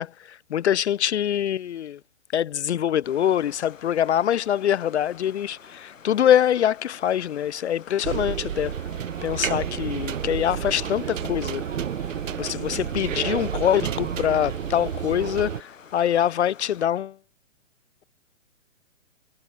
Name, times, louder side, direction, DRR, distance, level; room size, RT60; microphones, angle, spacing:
voice 1, 0.0-2.0 2.3-8.8 9.2-11.6 12.4-15.5 15.9-17.2, left 10 dB, 60° left, 0.5 m, -24 dB
sound 1, 3.0-16.9, left 6 dB, 80° left, 5.9 m, -48 dB
sound 2, 8.0-15.6, right 9 dB, 80° right, 1.0 m, -30 dB
voice 2, 10.1-15.4, right 7 dB, 60° right, 6.4 m, -43 dB
hypercardioid pair, 170°, 38 cm